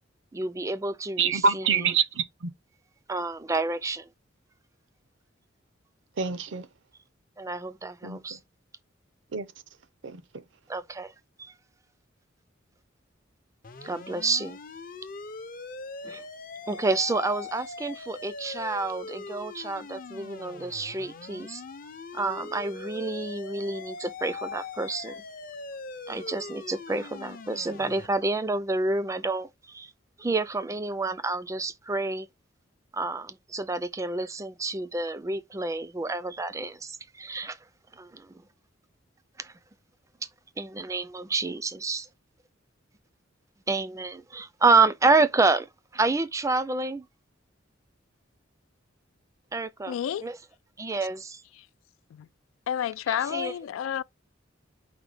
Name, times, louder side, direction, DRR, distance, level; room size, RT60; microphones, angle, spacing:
voice 1, 0.3-1.7 3.1-4.1 7.4-8.4 10.7-11.1 11.4-11.5 13.8-14.6 16.0-16.2 16.7-21.6 22.1-25.2 26.1-29.9 30.2-32.3 32.9-37.6 37.9-38.4 39.4-39.5 40.6-42.1 43.7-45.7 45.9-47.0 49.5-50.4 50.8-51.4 53.1-53.5, right 3 dB, 15° right, 0.4 m, -29 dB
voice 2, 1.2-2.5 6.2-6.7 8.0-8.4 9.3-9.5 10.0-10.4, right 5 dB, 65° right, 0.6 m, -26 dB
sound 1, 13.6-28.1, left 4 dB, 45° left, 0.6 m, -41 dB
voice 3, 49.9-50.3 52.1-52.3 52.7-54.0, left 9 dB, 90° left, 0.3 m, -30 dB
5.0 x 2.2 x 4.9 m
head